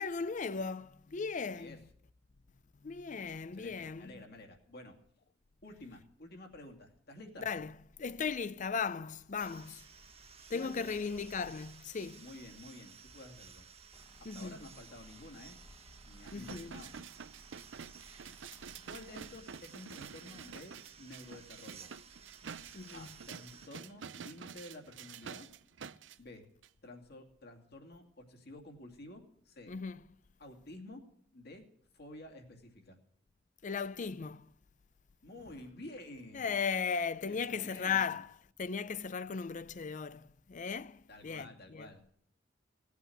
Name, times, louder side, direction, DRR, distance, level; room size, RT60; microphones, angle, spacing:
voice 1, 0.0-1.8 2.8-4.2 7.4-9.9 10.5-12.3 14.2-14.6 16.3-16.8 22.7-23.2 29.7-30.0 33.6-34.5 36.3-41.9, left 5 dB, 45° left, 0.5 m, -37 dB
voice 2, 3.5-5.0 5.6-7.5 10.5-11.2 12.2-13.6 14.2-15.6 16.1-17.0 18.9-21.9 22.6-25.5 26.2-26.4 26.8-29.7 30.4-31.0 31.3-31.6 31.9-33.0 35.2-36.6 37.3-38.2 41.1-42.1, left 1 dB, 60° left, 2.5 m, -51 dB
sound 1, 9.4-23.7, right 6 dB, 35° right, 1.2 m, -56 dB
sound 2, 13.9-19.5, right 1 dB, 15° left, 1.2 m, -61 dB
sound 3, 16.2-26.2 26.6-26.7, right 6 dB, 75° right, 0.6 m, -49 dB
17.5 x 8.4 x 7.8 m
head